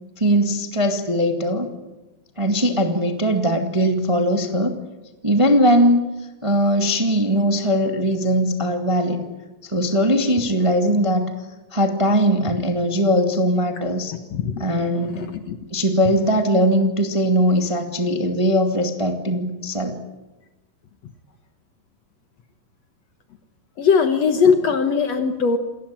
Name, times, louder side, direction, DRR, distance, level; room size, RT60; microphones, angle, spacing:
voice 1, 0.2-1.7 2.4-4.7 5.2-6.1 6.4-9.2 9.6-11.3 11.7-14.1 14.6-15.2 15.7-20.0, equal, 15° right, 4 dB, 1.2 m, -20 dB
voice 2, 14.3-14.7 14.9-15.6 23.8-25.6, left 5 dB, 60° left, 7 dB, 2.1 m, -20 dB
28.0 x 19.5 x 8.9 m, 1.1 s
omnidirectional pair, 4.2 m